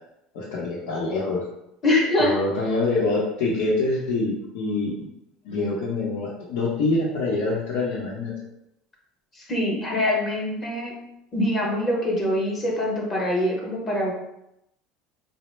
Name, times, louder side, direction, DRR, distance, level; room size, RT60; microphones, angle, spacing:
voice 1, 0.3-1.4 2.2-5.1 5.4-8.3, left 2 dB, 80° left, -6 dB, 0.8 m, -25 dB
voice 2, 1.8-2.4 9.3-10.9 11.3-14.1, left 1 dB, 25° left, -2 dB, 0.7 m, -24 dB
4.1 x 2.1 x 3.1 m, 0.82 s
cardioid pair, 175°, 0 cm